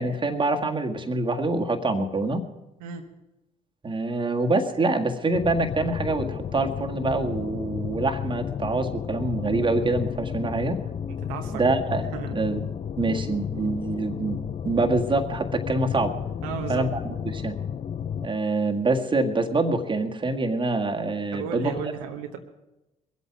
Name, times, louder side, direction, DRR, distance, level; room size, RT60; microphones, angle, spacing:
voice 1, 0.0-2.4 3.8-10.8 11.5-12.0 12.3-12.6 13.0-14.4 14.6-16.1 16.7-17.6 18.2-21.7, right 2 dB, 30° right, 3 dB, 1.7 m, -25 dB
voice 2, 2.8-3.1 11.1-11.7 12.1-12.4 16.4-16.9 21.3-22.4, right 7 dB, 85° right, 3 dB, 1.2 m, -34 dB
sound 1, 5.3-18.3, left 8 dB, 40° left, 0.6 m, -32 dB
21.5 x 8.3 x 6.0 m, 0.96 s
hypercardioid pair, 55°, 17 cm